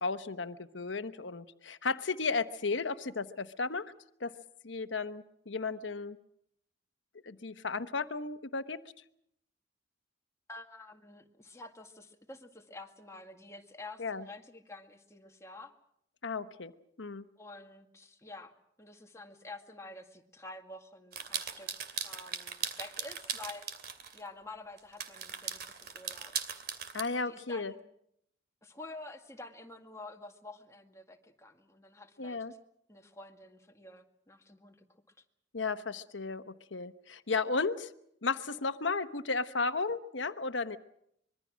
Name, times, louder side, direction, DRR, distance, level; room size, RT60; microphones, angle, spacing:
voice 1, 0.0-3.9 4.2-4.3 4.6-6.2 7.2-8.8 14.0-14.2 16.2-16.7 17.0-17.3 26.9-27.7 32.2-32.5 35.5-37.9 38.2-40.8, left 4 dB, 80° left, 11 dB, 1.0 m, -34 dB
voice 2, 10.5-15.7 17.4-18.5 18.8-23.7 24.1-26.3 27.3-27.8 28.6-32.5 32.9-34.8, left 2 dB, 15° left, 3 dB, 2.0 m, -49 dB
sound 1, 21.1-24.2 24.8-27.0, right 7 dB, 60° right, 2.5 m, -39 dB
25.0 x 22.5 x 6.3 m, 0.73 s
head